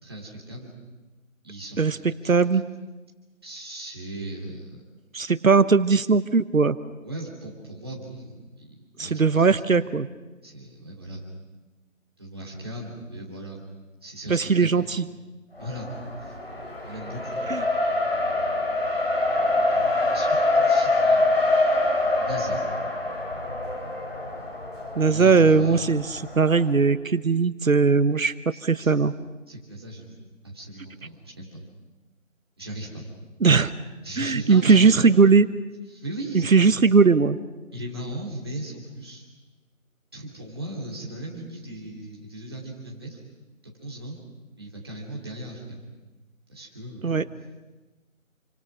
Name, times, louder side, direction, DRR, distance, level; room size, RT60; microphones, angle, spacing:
voice 1, 0.0-0.7 1.4-2.4 3.4-4.8 7.0-9.5 10.4-11.2 12.2-13.6 14.0-14.8 15.6-15.9 16.2-16.3 16.8-17.4 20.1-21.4 22.2-22.6 25.0-25.9 28.5-28.9 29.5-31.6 32.6-33.0 34.0-35.1 35.9-36.7 37.7-39.2 40.1-43.2 43.8-44.2 44.6-45.8 46.5-47.3, right 1 dB, 20° right, -3 dB, 2.9 m, -38 dB
voice 2, 2.2-2.6 5.1-6.8 9.0-10.1 14.3-15.0 17.5-17.6 25.0-29.1 33.4-33.7 34.2-35.5 36.3-37.4 47.0-47.2, right 4 dB, 75° right, 14 dB, 1.1 m, -19 dB
Race car auto racing, 15.6-26.6, left 2 dB, 45° left, 4.6 m, -25 dB
28.5 x 25.5 x 6.1 m, 1.2 s
figure-of-eight pair, 180°, 41 cm